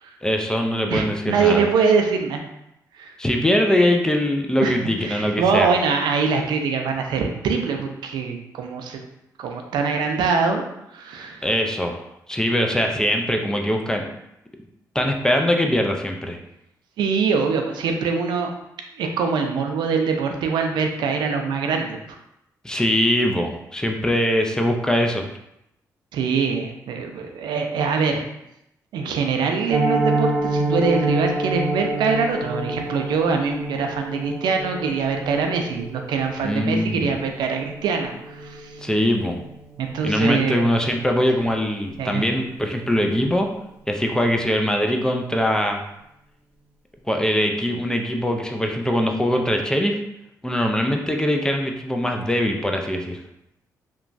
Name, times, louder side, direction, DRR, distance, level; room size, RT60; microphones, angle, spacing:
voice 1, 0.2-1.7 3.2-5.7 11.4-12.0 12.3-14.1 14.9-16.4 22.6-25.3 36.4-37.1 38.8-39.4 40.0-43.5 43.9-45.8 47.1-50.0 50.4-53.2, left 1 dB, 10° left, 3 dB, 0.4 m, -22 dB
voice 2, 0.9-2.4 2.9-3.1 4.6-9.0 9.4-10.6 10.9-11.5 17.0-18.5 18.9-22.0 26.1-28.2 28.9-38.7 39.8-40.7 42.0-42.3, right 5 dB, 80° right, 4 dB, 0.4 m, -23 dB
Piano, 29.7-40.6 40.9-41.1 41.4-41.5 41.9-42.1 42.5-42.6, right 2 dB, 15° right, 0.8 m, -28 dB
2.9 x 2.2 x 2.5 m, 0.83 s
cardioid pair, 70°, 7 cm